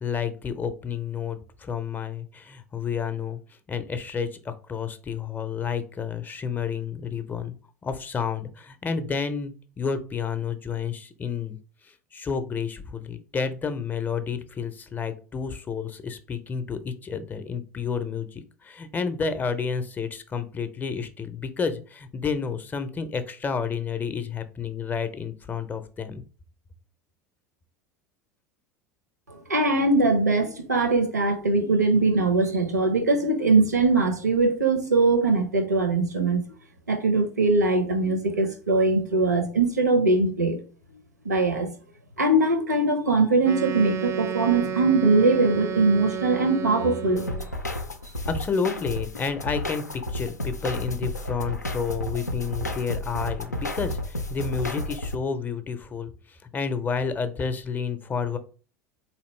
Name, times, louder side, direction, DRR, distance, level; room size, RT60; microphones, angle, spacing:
voice 1, 0.0-3.4 3.7-7.6 7.8-11.6 12.1-26.2 48.3-49.8 50.1-58.4, left 6 dB, 20° left, 0.5 m, -30 dB
voice 2, 29.5-36.4 36.9-40.6 41.2-41.7 42.2-47.3, right 3 dB, 80° right, 0.7 m, -21 dB
Wind instrument woodwind instrument, 43.4-47.5, right 8 dB, 35° right, 0.4 m, -31 dB
sound 1, 47.2-55.2, left 1 dB, 90° left, 0.4 m, -32 dB
4.0 x 2.9 x 3.1 m
figure-of-eight pair, 75°, 9 cm